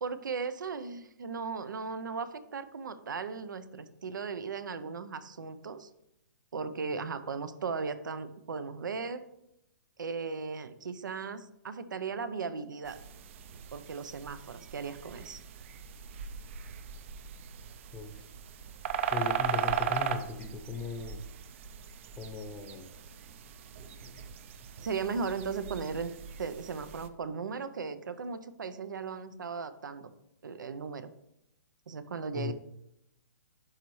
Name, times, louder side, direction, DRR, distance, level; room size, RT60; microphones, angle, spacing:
voice 1, 0.0-5.9 6.5-9.2 10.0-13.0 13.7-15.4 24.8-26.1 26.4-30.1 30.4-31.1 31.9-32.5, right 5 dB, 90° right, 12 dB, 0.7 m, -37 dB
sound 1, 12.8-27.1, right 8 dB, 40° right, 0.5 m, -38 dB
voice 2, 17.9-18.2 19.1-21.2 22.2-22.9 23.8-24.1 32.3-32.5, left 5 dB, 10° left, 5 dB, 0.7 m, -38 dB
11.5 x 4.1 x 3.1 m, 0.82 s
hypercardioid pair, 155°, 10 cm